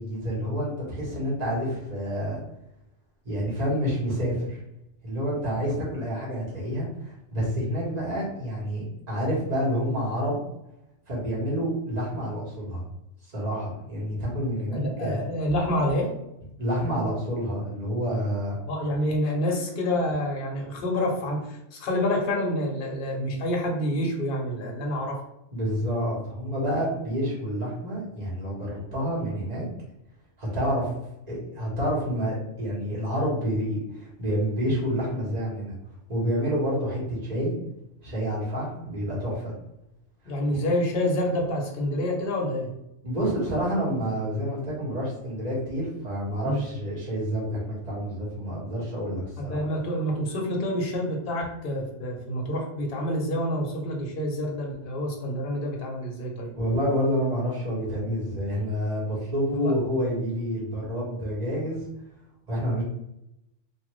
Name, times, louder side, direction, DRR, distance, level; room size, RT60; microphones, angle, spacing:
voice 1, 0.0-2.4 3.2-4.6 5.0-10.4 11.1-12.8 13.3-15.2 16.6-18.6 25.5-29.6 30.4-30.9 31.3-35.7 36.1-37.6 38.0-39.5 43.0-49.6 56.6-61.8 62.5-62.8, equal, 35° right, -6 dB, 1.2 m, -28 dB
voice 2, 14.7-16.1 18.7-25.2 40.2-42.7 43.5-43.6 46.4-46.6 49.4-56.5 59.6-59.7, left 1 dB, 50° left, -1 dB, 0.9 m, -28 dB
2.5 x 2.5 x 3.1 m, 0.86 s
omnidirectional pair, 1.3 m